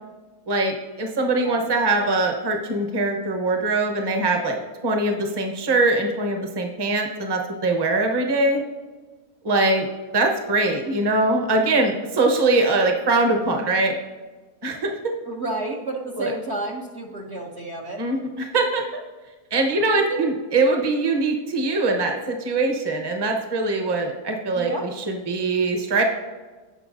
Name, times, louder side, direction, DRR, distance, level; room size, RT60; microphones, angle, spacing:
voice 1, 0.5-8.6 9.4-9.9 10.1-13.9 14.6-15.1 16.2-16.3 18.0-18.8 19.5-24.7 25.1-26.0, right 2 dB, 20° right, 3 dB, 0.8 m, -22 dB
voice 2, 15.2-18.0 19.9-20.2 24.5-24.9, right 2 dB, 50° right, 0 dB, 0.9 m, -30 dB
17.0 x 5.8 x 2.6 m, 1.3 s
omnidirectional pair, 1.8 m